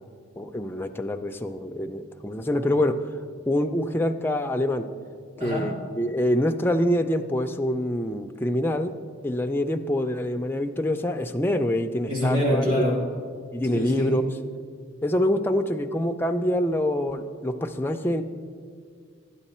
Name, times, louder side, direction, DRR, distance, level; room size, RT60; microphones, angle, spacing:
voice 1, 0.4-3.0 3.5-4.9 5.4-8.9 9.2-12.9 13.5-14.3 15.0-18.2, left 1 dB, 10° left, 5 dB, 0.3 m, -25 dB
voice 2, 5.4-5.7 12.1-13.0 13.7-14.1, equal, 40° right, -4 dB, 3.3 m, -25 dB
12.5 x 9.0 x 4.2 m, 2.1 s
head